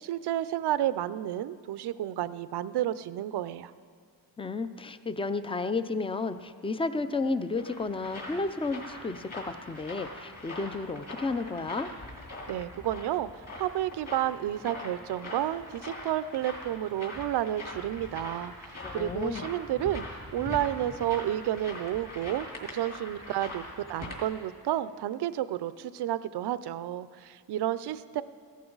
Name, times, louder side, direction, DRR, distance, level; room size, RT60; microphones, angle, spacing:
voice 1, 0.0-3.7 12.5-28.2, right 12 dB, 65° right, 15 dB, 0.6 m, -31 dB
voice 2, 4.4-11.9 18.8-19.5, left 3 dB, 15° left, 11 dB, 0.5 m, -32 dB
sound 1, 7.2-24.2, left 2 dB, 35° left, 3.5 m, -42 dB
15.5 x 15.0 x 3.9 m, 2.1 s
cardioid pair, 95°, 43 cm